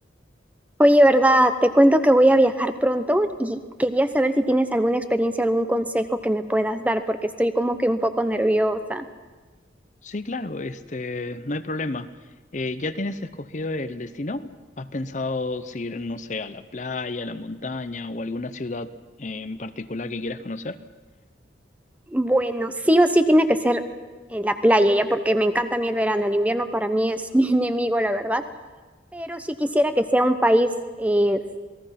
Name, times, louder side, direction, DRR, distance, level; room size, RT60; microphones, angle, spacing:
voice 1, 0.8-9.0 22.1-23.8 24.3-28.4 29.1-30.7 31.0-31.4, right 1 dB, 10° right, 9 dB, 0.9 m, -20 dB
voice 2, 10.0-12.1 12.5-18.9 19.2-20.8, left 2 dB, 40° left, 12 dB, 0.7 m, -31 dB
27.5 x 19.5 x 5.9 m, 1.3 s
head